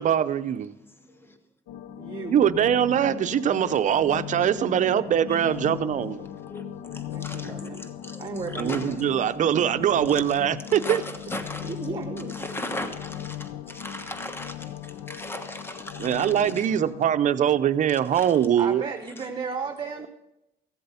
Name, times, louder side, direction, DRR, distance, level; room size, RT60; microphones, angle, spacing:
voice 1, 0.0-0.7 2.3-6.2 8.6-11.0 16.0-18.9, right 9 dB, 50° right, 0.6 m, -22 dB
voice 2, 0.8-1.4 3.6-3.8 5.0-5.6 6.0-9.0 10.1-10.3 10.6-11.8 12.2-16.8 18.1-18.5 19.2-19.3, left 1 dB, 15° left, 1.3 m, -39 dB
sound 1, 1.7-17.2, left 11 dB, 90° left, 0.6 m, -38 dB
voice 3, 2.0-2.4 7.1-7.8 8.2-9.0 11.6-12.5 18.6-20.1, right 5 dB, 30° right, 1.0 m, -34 dB
15.5 x 7.7 x 5.6 m
cardioid pair, 110°, 17 cm